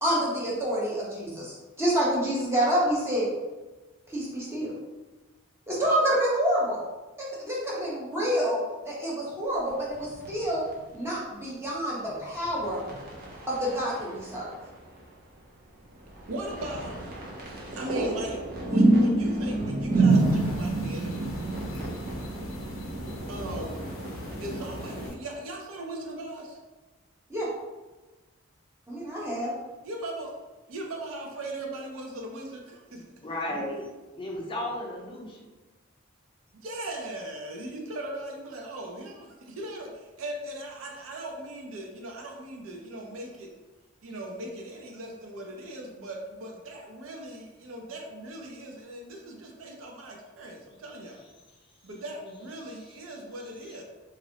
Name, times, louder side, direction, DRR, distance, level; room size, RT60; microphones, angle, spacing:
voice 1, 0.0-3.3 4.1-4.7 5.7-6.8 7.4-10.6 10.9-12.8 13.5-14.5 27.3-27.5 28.9-29.5, equal, 15° right, -6 dB, 0.9 m, -28 dB
sound 1, 9.8-11.0 12.0-15.0 15.3-15.4 15.9-25.1, right 2 dB, 45° right, 0.7 m, -28 dB
voice 2, 16.3-17.0 17.5-18.4 18.7-21.4 23.3-23.9 24.4-26.6 29.8-30.3 30.7-33.0 36.6-43.5 44.0-51.2 51.8-53.8, right 1 dB, 90° right, 1 dB, 0.6 m, -38 dB
sound 2, 20.1-25.2, left 1 dB, 80° left, 0.5 m, -42 dB
voice 3, 33.2-33.9 34.2-35.4 52.6-53.0 53.4-53.8, left 1 dB, 25° left, -2 dB, 0.5 m, -35 dB
3.0 x 2.5 x 2.8 m, 1.2 s
head